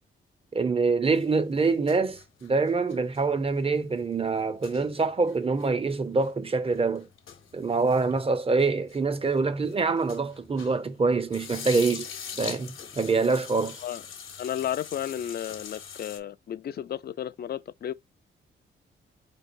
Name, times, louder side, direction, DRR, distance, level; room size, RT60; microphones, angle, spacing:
voice 1, 0.5-7.1 7.5-12.1 12.4-13.8, right 4 dB, 25° right, 0.6 m, -25 dB
sound 1, 1.1-10.9 11.2-16.2, left 7 dB, 75° left, 1.0 m, -43 dB
voice 2, 14.4-17.9, left 10 dB, 50° left, 0.4 m, -33 dB
4.5 x 3.1 x 2.5 m
cardioid pair, 75°, 21 cm